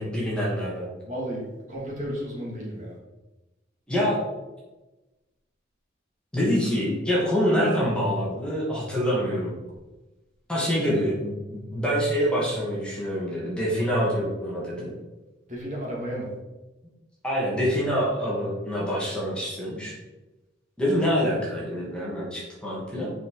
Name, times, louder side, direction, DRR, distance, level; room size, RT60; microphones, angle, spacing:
voice 1, 0.0-0.9 3.9-4.2 6.3-9.5 10.5-14.9 17.2-20.0 20.8-23.1, equal, 5° left, -6 dB, 2.3 m, -26 dB
voice 2, 1.0-2.9 15.5-16.3, equal, 35° right, -4 dB, 2.7 m, -33 dB
6.8 x 5.9 x 4.9 m, 1.1 s
head